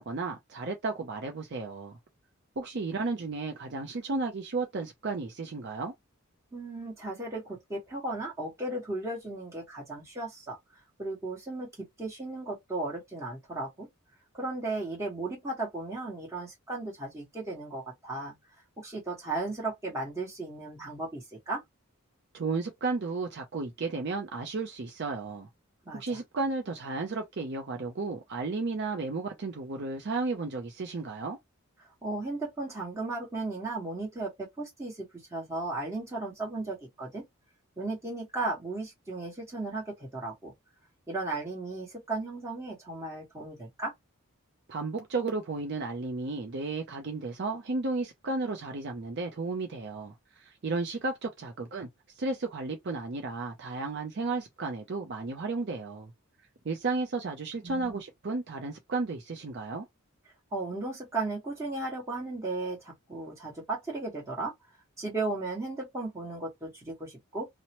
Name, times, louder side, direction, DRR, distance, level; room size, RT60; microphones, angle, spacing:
voice 1, 0.0-2.0 2.6-5.9 22.3-25.5 25.9-31.4 44.7-51.9 52.1-56.1 56.6-59.9, right 3 dB, 50° right, 0.5 m, -33 dB
voice 2, 6.5-10.6 11.0-13.9 14.3-18.3 18.8-21.6 25.8-26.2 32.0-37.2 37.8-40.5 41.1-43.9 57.6-58.0 60.5-64.5 65.0-67.5, right 2 dB, 15° right, 1.3 m, -35 dB
2.9 x 2.0 x 2.9 m
head